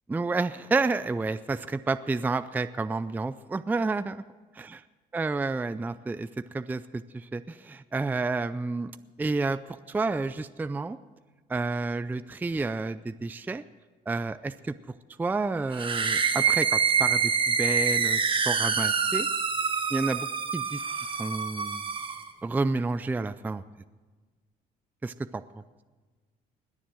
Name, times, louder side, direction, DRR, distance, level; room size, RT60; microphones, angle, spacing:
voice 1, 0.1-4.2 4.5-4.8 5.1-8.9 9.2-11.0 11.5-13.6 14.1-14.7 15.2-19.3 19.9-20.3 20.5-20.8 21.2-21.9 22.4-23.6 25.0-25.4, right 3 dB, 10° right, 13 dB, 0.4 m, -30 dB
sound 1, 15.7-22.3, right 6 dB, 30° right, 1.2 m, -26 dB
20.5 x 7.3 x 7.6 m, 1.4 s
cardioid pair, 110°, 17 cm